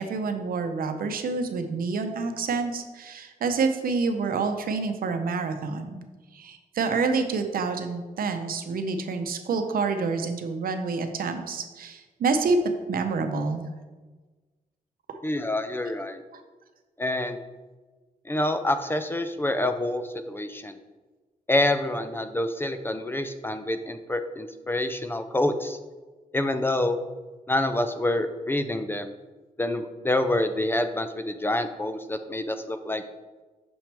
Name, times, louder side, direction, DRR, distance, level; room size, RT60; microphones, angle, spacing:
voice 1, 0.0-6.0 6.3-12.6 12.9-13.6 15.1-15.2 16.3-16.4, right 4 dB, 85° right, 6 dB, 0.7 m, -28 dB
voice 2, 15.2-16.2 17.0-17.4 18.3-20.8 21.5-25.8 26.3-27.0 27.5-29.1 29.6-33.0, left 1 dB, 15° left, 9 dB, 0.3 m, -27 dB
6.3 x 6.0 x 3.4 m, 1.3 s
wide cardioid pair, 155°, 15 cm